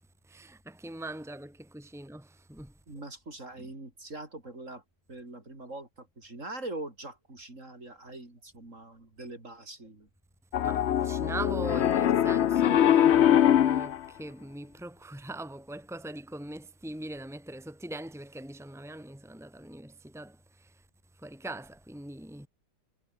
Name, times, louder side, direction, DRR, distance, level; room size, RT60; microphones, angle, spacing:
voice 1, 0.3-2.7 3.6-3.7 10.6-20.8 21.2-22.5, right 1 dB, ahead, 2.8 m, -41 dB
voice 2, 2.9-4.8 5.1-10.1, right 2 dB, 45° right, 5.6 m, -43 dB
Piano, 10.5-14.0, left 10 dB, 60° left, 0.7 m, -22 dB
omnidirectional pair, 1.8 m